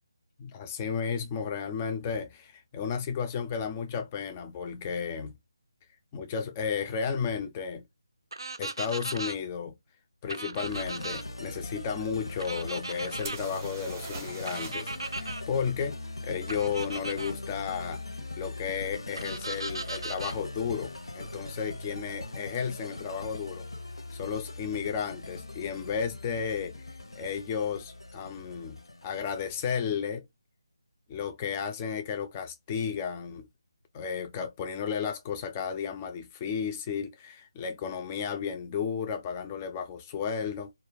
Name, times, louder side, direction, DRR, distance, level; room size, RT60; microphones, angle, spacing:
voice 1, 0.4-5.4 6.1-7.8 8.6-9.7 10.2-18.0 18.4-23.7 24.1-30.2 31.1-33.5 33.9-40.7, left 7 dB, 20° left, 0.3 m, -33 dB
sound 1, 8.3-9.4 10.3-11.2 12.4-13.4 14.5-15.4 16.5-17.3 19.2-20.4, right 2 dB, 90° right, 0.4 m, -37 dB
sound 2, 10.6-29.9, left 2 dB, 85° left, 0.8 m, -41 dB
sound 3, 13.2-15.0 15.2-15.3 18.7-18.8 19.5-19.7 19.9-20.5 22.5-22.6 22.9-23.0, right 4 dB, 25° right, 0.6 m, -43 dB
2.2 x 2.1 x 3.3 m
figure-of-eight pair, 160°, 2 cm